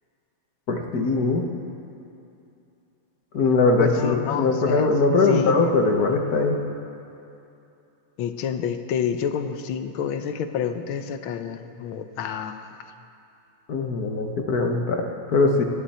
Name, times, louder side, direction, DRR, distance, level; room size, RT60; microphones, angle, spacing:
voice 1, 0.7-1.5 3.3-6.6 13.7-15.6, left 3 dB, 50° left, 3 dB, 1.5 m, -21 dB
voice 2, 3.8-4.9 5.2-5.8 8.2-12.7, left 8 dB, 75° left, 8 dB, 1.5 m, -28 dB
29.5 x 11.0 x 4.3 m, 2.7 s
omnidirectional pair, 2.4 m